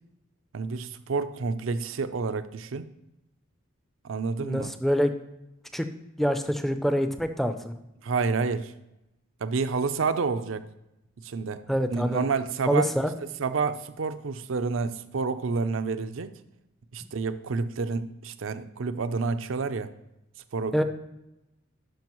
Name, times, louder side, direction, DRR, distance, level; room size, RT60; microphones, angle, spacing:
voice 1, 0.5-2.9 4.0-4.7 8.0-8.7 9.4-10.6 11.2-11.6 11.9-12.9 13.4-16.3 16.9-19.9 20.5-20.8, right 4 dB, 65° right, 12 dB, 0.5 m, -29 dB
voice 2, 4.4-5.1 5.7-5.9 6.2-7.8 11.7-12.2 12.7-13.1 20.7-20.8, equal, ahead, 8 dB, 0.5 m, -25 dB
11.5 x 5.3 x 3.0 m, 0.92 s
head